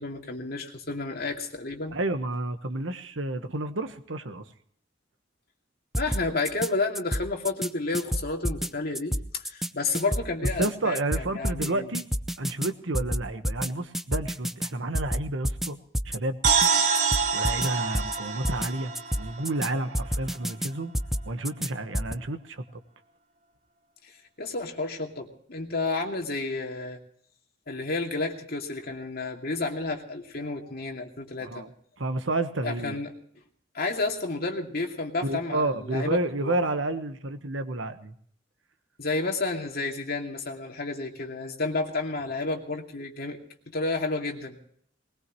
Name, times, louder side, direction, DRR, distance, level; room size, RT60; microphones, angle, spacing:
voice 1, 0.0-2.0 6.0-11.9 24.0-27.0 27.7-31.6 32.6-33.1 33.7-36.6 39.0-43.4 43.7-44.6, left 3 dB, 50° left, 2 dB, 2.5 m, -31 dB
voice 2, 1.9-4.4 10.6-12.0 12.4-15.8 16.0-16.4 17.3-20.9 21.3-22.6 31.4-31.7 32.0-33.0 35.2-38.1, right 2 dB, 75° right, 9 dB, 1.4 m, -30 dB
sound 1, 5.9-6.7 7.0-7.7 7.9-8.7 8.9-9.7 9.9-10.7 11.0-11.7 11.9-12.7 12.9-13.7 13.9-14.7 14.9-15.7 15.9-16.2 16.4-16.7 16.9-17.7 17.9-18.2 18.4-18.7 19.0-19.7 19.9-20.7 20.9-21.7 21.9-22.2, equal, ahead, 0.5 m, -29 dB
sound 2, 16.4-20.1, right 5 dB, 40° right, 2.5 m, -26 dB
21.0 x 20.0 x 3.1 m, 0.63 s
head